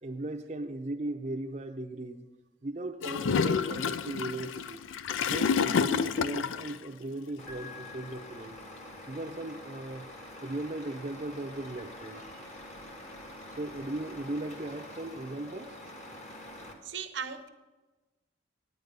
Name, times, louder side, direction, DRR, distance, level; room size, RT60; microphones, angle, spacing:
voice 1, 0.0-2.3 2.6-4.8 5.3-8.6 9.1-10.1 10.4-12.8 13.6-15.7, right 2 dB, 35° right, 3 dB, 0.6 m, -37 dB
Gurgling / Toilet flush, 3.0-6.8, left 6 dB, 90° left, 0.4 m, -29 dB
Truck, 7.4-16.7, left 1 dB, 35° left, 1.3 m, -46 dB
Piano, 7.5-9.4, left 6 dB, 65° left, 3.7 m, -51 dB
voice 2, 16.8-17.5, right 7 dB, 75° right, 8 dB, 0.8 m, -37 dB
9.4 x 9.2 x 5.3 m, 1.2 s
head